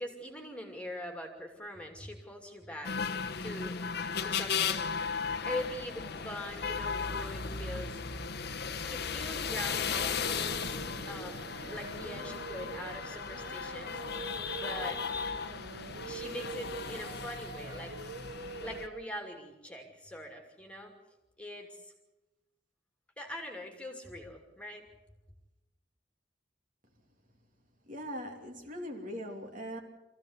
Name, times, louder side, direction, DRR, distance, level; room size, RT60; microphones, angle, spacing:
voice 1, 0.0-2.9 3.4-3.8 4.2-4.9 5.4-7.9 8.9-10.8 11.0-14.0 14.5-15.0 16.0-18.1 18.6-20.9 21.4-21.9 23.2-24.8, left 1 dB, 5° left, 2 dB, 2.7 m, -42 dB
sound 1, 2.8-18.9, left 6 dB, 60° left, 1.1 m, -36 dB
Singing, 9.6-19.1, right 4 dB, 85° right, 1.3 m, -45 dB
voice 2, 27.9-29.8, equal, 45° right, 2 dB, 3.0 m, -40 dB
25.5 x 15.5 x 8.2 m, 1.1 s
head